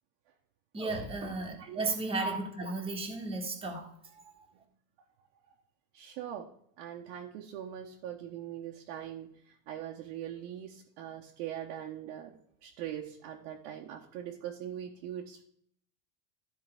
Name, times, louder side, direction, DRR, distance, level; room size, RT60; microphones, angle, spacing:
voice 1, 0.7-3.9, right 3 dB, 10° right, 1 dB, 1.5 m, -34 dB
voice 2, 5.9-6.5 6.8-12.3 12.6-15.4, right 10 dB, 60° right, 0 dB, 1.2 m, -41 dB
13.5 x 4.7 x 3.5 m, 0.66 s
supercardioid pair, 155°, 47 cm